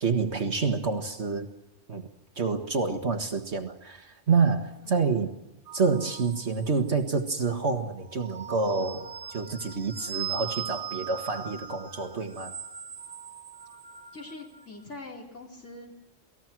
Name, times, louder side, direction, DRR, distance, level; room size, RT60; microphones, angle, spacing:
voice 1, 0.0-1.5 1.9-2.1 2.4-5.3 5.7-12.5, right 4 dB, 65° right, 5 dB, 2.0 m, -28 dB
sound 1, 5.7-7.1 8.0-14.7, right 8 dB, 50° right, 1.3 m, -40 dB
voice 2, 14.1-15.9, left 2 dB, 85° left, -2 dB, 4.8 m, -43 dB
28.5 x 19.5 x 6.1 m, 0.96 s
omnidirectional pair, 1.2 m